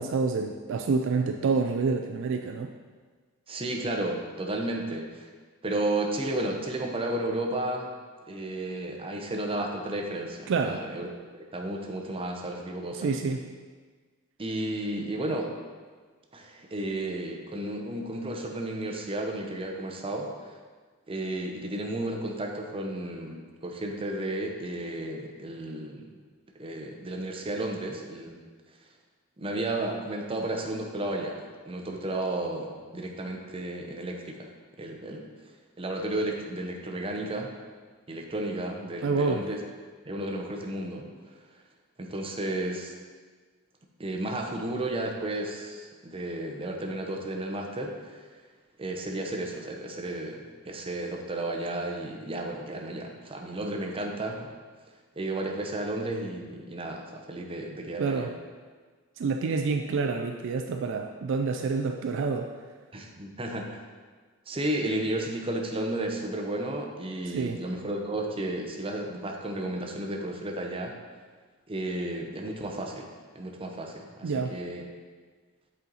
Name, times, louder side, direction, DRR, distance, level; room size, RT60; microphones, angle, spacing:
voice 1, 0.0-2.7 10.5-10.8 12.9-13.4 39.0-39.5 58.0-58.3 59.2-62.5 67.3-67.6 74.2-74.6, right 4 dB, 60° right, 4 dB, 0.4 m, -28 dB
voice 2, 3.5-5.3 5.6-7.9 8.3-13.1 14.4-15.5 16.3-20.5 21.1-26.2 26.5-28.4 29.4-34.5 34.8-35.3 35.8-37.5 38.1-39.6 40.1-41.0 42.0-42.9 44.0-48.2 48.8-54.5 55.2-58.3 62.9-63.8 64.5-70.9 71.7-74.8, right 1 dB, 25° right, 1 dB, 0.8 m, -33 dB
8.0 x 4.4 x 4.0 m, 1.5 s
head